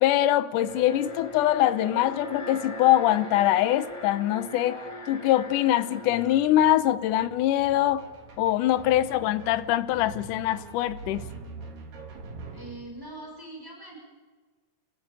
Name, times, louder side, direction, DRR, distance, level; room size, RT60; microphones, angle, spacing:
voice 1, 0.0-4.8 5.1-8.0 8.4-11.3, left 13 dB, 75° left, 2.3 m, -23 dB
Alarm, 0.5-7.6, left 1 dB, 35° left, 0.4 m, -41 dB
sound 1, 5.4-5.6 5.9-12.7, right 3 dB, 75° right, 4.9 m, -44 dB
voice 2, 12.5-14.0, right 2 dB, 5° right, 6.5 m, -42 dB
29.5 x 16.0 x 8.8 m
omnidirectional pair, 4.0 m